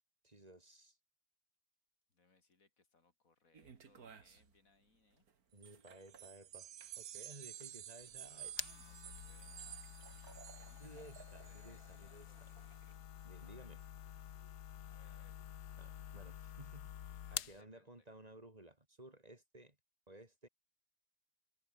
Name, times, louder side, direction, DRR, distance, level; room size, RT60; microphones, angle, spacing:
voice 1, 0.2-1.0 5.5-6.7 7.0-8.5 10.8-12.5 13.2-13.8 15.8-19.8 20.1-20.5, right 1 dB, 25° right, 3.3 m, -57 dB
voice 2, 2.1-5.3 8.3-9.9 10.6-12.6 13.4-13.7 14.9-15.4 17.3-18.1, left 4 dB, 60° left, 3.5 m, -72 dB
sound 1, 3.5-12.9, right 6 dB, 70° right, 2.3 m, -62 dB
sound 2, 5.6-11.8, right 11 dB, 85° right, 1.5 m, -52 dB
sound 3, 8.0-17.6, left 10 dB, 85° left, 1.5 m, -49 dB
omnidirectional pair, 1.7 m